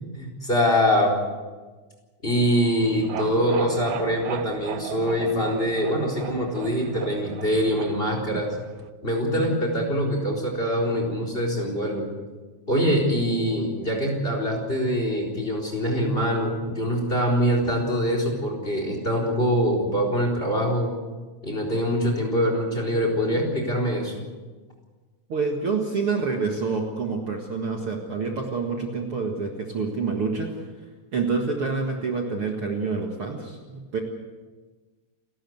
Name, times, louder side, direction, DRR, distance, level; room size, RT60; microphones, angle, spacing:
voice 1, 0.1-1.1 2.2-8.5 9.0-12.1 12.7-20.9 21.4-24.2, equal, 15° left, 1 dB, 4.2 m, -24 dB
sound 1, 2.8-8.9, right 10 dB, 75° right, 2.3 m, -37 dB
voice 2, 25.3-30.7 31.1-34.0, right 4 dB, 50° right, 1 dB, 2.4 m, -27 dB
29.0 x 13.0 x 7.9 m, 1.3 s
omnidirectional pair, 3.6 m